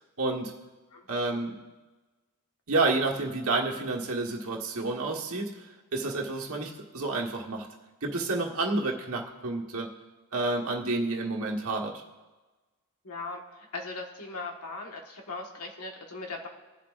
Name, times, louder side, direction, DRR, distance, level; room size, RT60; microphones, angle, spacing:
voice 1, 0.2-0.5 1.1-1.6 2.7-5.5 5.9-7.7 8.0-9.9 10.3-12.0, right 3 dB, 70° right, -1 dB, 1.5 m, -29 dB
voice 2, 13.0-16.5, left 3 dB, 90° left, 1 dB, 1.6 m, -39 dB
21.0 x 7.4 x 2.6 m, 1.2 s
head